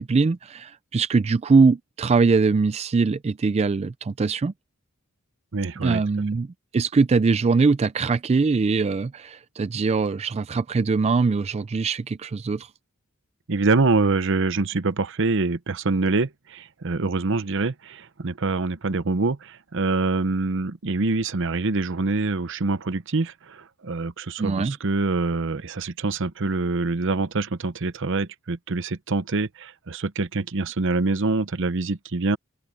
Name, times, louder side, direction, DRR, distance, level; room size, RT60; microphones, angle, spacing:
voice 1, 0.0-4.5 5.8-6.5 6.7-12.7 24.4-24.8, right 4 dB, 30° right, 0.3 m, -22 dB
voice 2, 5.5-6.0 13.5-32.4, right 3 dB, 65° right, 0.8 m, -25 dB
open air
head